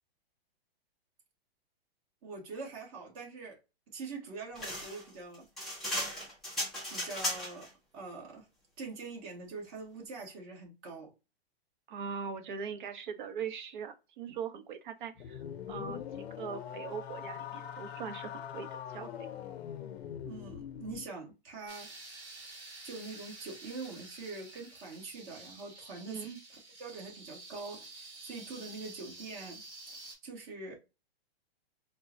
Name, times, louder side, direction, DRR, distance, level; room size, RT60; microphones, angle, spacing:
voice 1, 2.2-3.6 3.9-5.5 6.9-7.7 7.9-8.5 8.8-11.1 20.2-22.0 22.8-26.3 26.8-29.6 30.2-30.8, right 3 dB, 35° right, 1.4 m, -44 dB
sound 1, 4.6-7.7, left 1 dB, ahead, 0.3 m, -36 dB
voice 2, 11.9-19.3 26.1-26.4, right 6 dB, 50° right, 0.7 m, -41 dB
sound 2, 15.2-21.1, left 9 dB, 85° left, 0.6 m, -42 dB
sound 3, 21.7-30.1, right 3 dB, 15° right, 1.4 m, -50 dB
4.4 x 2.2 x 2.6 m
hypercardioid pair, 155°, 31 cm